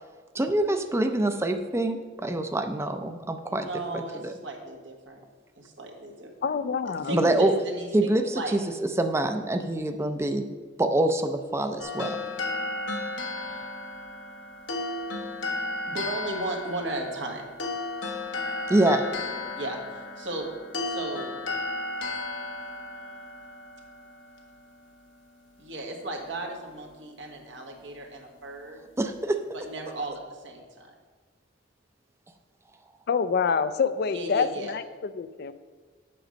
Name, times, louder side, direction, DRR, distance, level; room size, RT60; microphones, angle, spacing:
voice 1, 0.3-3.7 3.9-4.3 7.1-7.5 7.9-8.6 9.0-10.4 10.8-12.2 18.7-19.0 29.0-29.4, right 1 dB, 15° right, 6 dB, 0.4 m, -25 dB
voice 2, 3.5-5.2 5.6-6.3 7.0-8.5 13.3-13.7 15.9-17.5 19.6-20.4 20.9-21.4 25.6-28.8 29.5-30.9 34.1-34.8, right 2 dB, 85° right, 1 dB, 1.5 m, -35 dB
voice 3, 6.4-7.2 33.1-34.8 35.1-35.5, left 5 dB, 60° left, 12 dB, 0.4 m, -26 dB
sound 1, 11.8-25.0, left 2 dB, 85° left, 1.0 m, -34 dB
7.7 x 6.3 x 5.1 m, 1.4 s
head